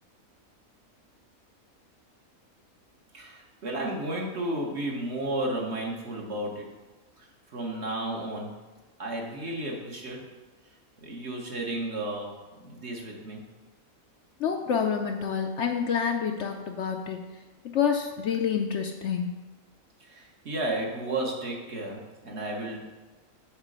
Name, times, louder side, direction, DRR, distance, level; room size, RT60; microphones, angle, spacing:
voice 1, 3.1-6.7 7.2-8.6 9.0-10.3 11.0-13.4 20.0-23.0, right 1 dB, 50° right, -1 dB, 1.4 m, -33 dB
voice 2, 14.4-17.2 17.7-19.4, left 7 dB, 65° left, 4 dB, 0.8 m, -28 dB
8.1 x 3.7 x 6.6 m, 1.2 s
omnidirectional pair, 1.5 m